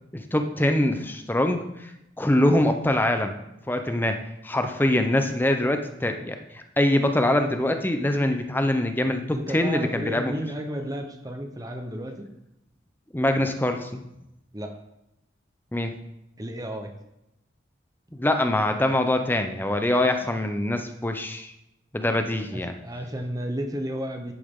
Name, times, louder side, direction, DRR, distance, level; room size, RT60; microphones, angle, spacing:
voice 1, 0.1-1.9 2.2-3.4 3.7-4.2 4.4-10.3 13.1-14.0 15.7-15.9 18.1-21.5 21.9-22.7, left 1 dB, 10° left, 6 dB, 0.6 m, -24 dB
voice 2, 9.3-12.3 14.5-14.7 16.4-16.9 22.5-24.3, equal, 20° right, 5 dB, 0.9 m, -32 dB
11.0 x 8.4 x 3.7 m, 0.86 s
head